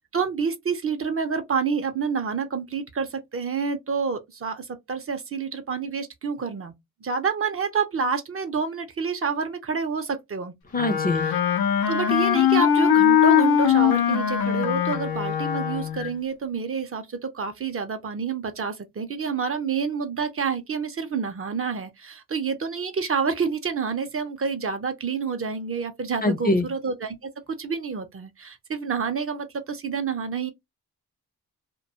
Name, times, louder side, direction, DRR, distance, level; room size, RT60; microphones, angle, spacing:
voice 1, 0.1-6.7 7.0-10.5 11.1-11.4 11.9-27.1 27.6-30.5, right 5 dB, 40° right, 0.5 m, -28 dB
voice 2, 10.7-11.3 26.2-26.7, left 2 dB, 25° left, 0.5 m, -23 dB
Wind instrument woodwind instrument, 10.8-16.1, left 9 dB, 85° left, 0.6 m, -21 dB
2.3 x 2.2 x 2.7 m
supercardioid pair, 55°, 36 cm